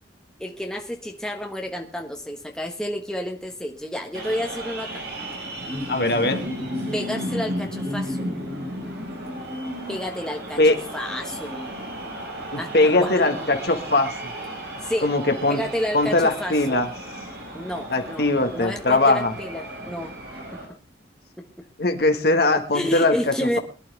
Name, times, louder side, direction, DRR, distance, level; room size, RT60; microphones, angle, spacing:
voice 1, 0.4-5.0 6.9-8.2 9.9-10.6 10.9-11.7 12.6-13.5 14.8-15.1 15.5-16.8 17.5-18.3 18.5-20.4 22.7-23.6, equal, 5° left, 2 dB, 1.5 m, -30 dB
sound 1, 4.1-20.7, equal, 65° right, 5.3 m, -34 dB
voice 2, 5.9-6.4 10.6-10.8 12.5-14.3 15.0-15.6 15.9-16.9 17.9-19.3 21.8-23.6, left 2 dB, 60° left, 6 dB, 1.7 m, -21 dB
22.5 x 11.5 x 3.5 m, 0.35 s
head